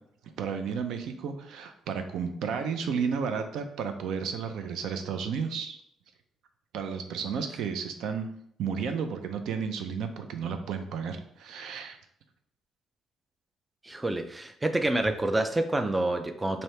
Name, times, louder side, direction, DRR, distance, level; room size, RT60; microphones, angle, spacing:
voice 1, 0.4-5.8 6.7-8.3 8.6-12.0, right 6 dB, 75° right, 7 dB, 0.5 m, -32 dB
voice 2, 13.8-16.6, right 2 dB, 15° right, 7 dB, 0.3 m, -28 dB
3.2 x 2.7 x 4.3 m, 0.70 s
cardioid pair, 105°, 0 cm